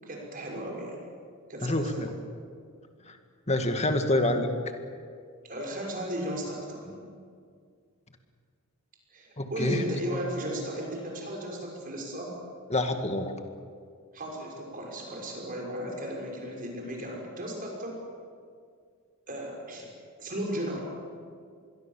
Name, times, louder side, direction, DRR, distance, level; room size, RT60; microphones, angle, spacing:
voice 1, 0.0-1.0 1.5-2.2 5.4-7.2 9.1-12.3 14.1-18.0 19.3-19.9 20.2-20.8, equal, 40° right, 0 dB, 6.2 m, -35 dB
voice 2, 1.6-2.1 3.1-3.2 3.5-4.5 9.4-10.2 12.7-13.4, left 1 dB, 30° left, 6 dB, 2.1 m, -27 dB
26.0 x 22.0 x 7.4 m, 2.2 s
head